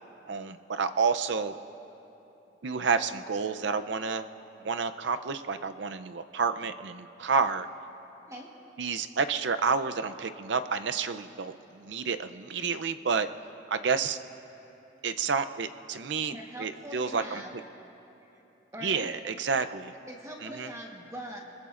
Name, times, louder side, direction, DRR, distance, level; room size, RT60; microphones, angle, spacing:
voice 1, 0.3-1.5 2.6-4.3 4.6-7.7 8.8-13.3 13.7-14.2 15.0-17.4 18.8-19.9 20.4-20.7, right 5 dB, 80° right, 10 dB, 0.6 m, -30 dB
voice 2, 16.3-17.5 18.7-19.1 20.1-21.4, equal, 15° right, 0 dB, 1.3 m, -42 dB
25.0 x 21.5 x 2.5 m, 3.0 s
head